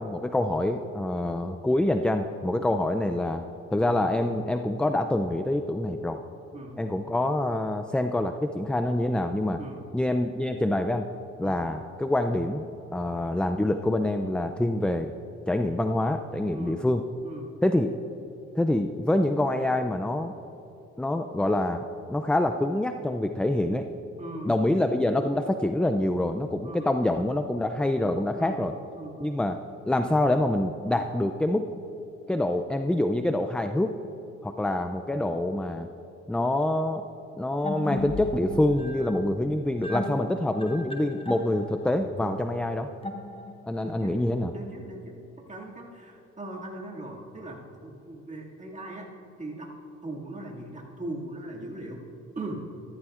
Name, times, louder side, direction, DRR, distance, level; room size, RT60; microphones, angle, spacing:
voice 1, 0.0-3.4 3.7-6.2 6.8-9.6 9.9-11.1 11.4-12.7 12.9-15.1 15.5-17.0 17.6-17.9 18.5-20.3 21.0-21.8 22.1-23.8 24.5-28.7 29.2-29.6 29.9-31.7 32.3-33.9 34.4-35.9 36.3-37.0 37.4-42.9 43.7-44.5, left 1 dB, 5° left, 7 dB, 0.3 m, -26 dB
voice 2, 16.5-16.8 17.2-17.5 24.2-24.5 26.6-26.9 28.4-28.7 29.0-29.4 43.8-44.2 44.5-45.2 45.5-49.1 49.4-49.7 50.0-52.0 52.4-52.6, right 2 dB, 25° right, -2 dB, 2.2 m, -39 dB
sound 1, 37.6-43.8, left 2 dB, 20° left, 0.9 m, -36 dB
14.0 x 13.5 x 2.5 m, 2.9 s
cardioid pair, 90°, 30 cm